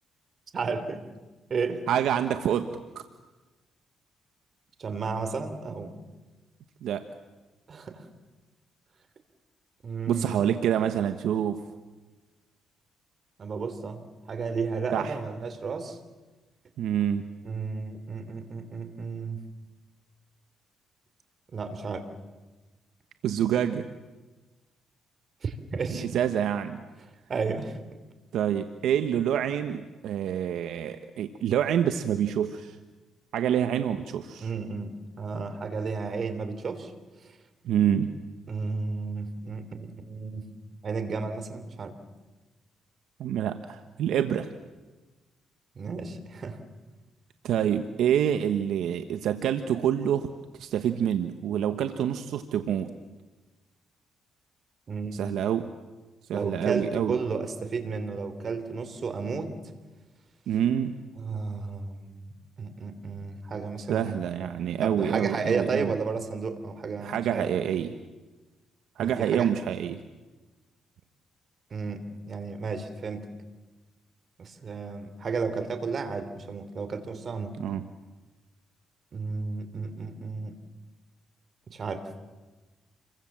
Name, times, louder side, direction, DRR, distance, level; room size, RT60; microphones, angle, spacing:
voice 1, 0.5-1.0 1.5-1.8 4.8-5.9 7.7-8.1 9.8-10.4 13.4-14.0 14.3-16.0 17.4-19.5 21.5-22.1 25.4-26.1 27.3-27.8 34.4-36.9 37.2-37.4 38.5-40.5 40.8-41.9 45.7-46.6 54.9-55.3 56.3-59.5 61.2-62.2 62.6-64.2 64.8-67.5 69.0-69.5 71.7-73.3 74.4-77.5 79.1-80.6 81.7-82.0, right 4 dB, 45° right, 9 dB, 3.3 m, -33 dB
voice 2, 1.9-3.0 6.8-7.0 10.1-11.6 14.9-15.1 16.8-17.2 23.2-23.9 25.9-26.8 28.3-32.8 33.3-34.5 37.6-38.1 43.2-44.5 47.4-50.3 50.6-52.9 55.1-55.7 56.3-57.2 60.5-61.0 63.9-65.9 67.0-68.0 69.0-70.0 77.6-77.8, right 9 dB, 80° right, 9 dB, 1.2 m, -27 dB
28.5 x 23.5 x 7.5 m, 1.2 s
cardioid pair, 90°, 0 cm